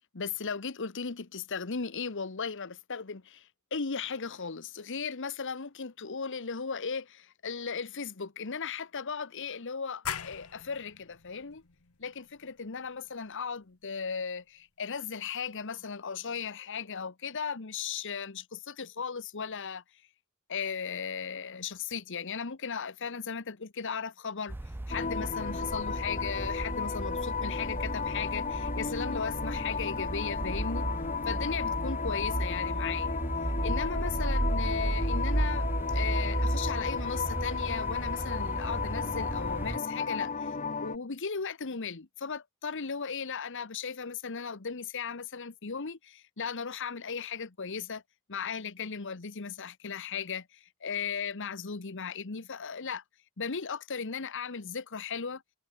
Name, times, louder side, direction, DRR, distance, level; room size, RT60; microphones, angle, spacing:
voice 1, 0.1-11.6 12.0-19.8 20.5-24.6 24.9-30.9 31.3-33.2 33.6-40.5 40.8-48.0 48.3-53.0 53.4-55.4, left 6 dB, 55° left, 1.1 m, -36 dB
sound 1, 10.0-15.4, left 8 dB, 75° left, 1.5 m, -44 dB
sound 2, 24.5-39.8, right 1 dB, 10° right, 0.3 m, -34 dB
sound 3, 24.9-41.0, left 5 dB, 35° left, 1.0 m, -34 dB
head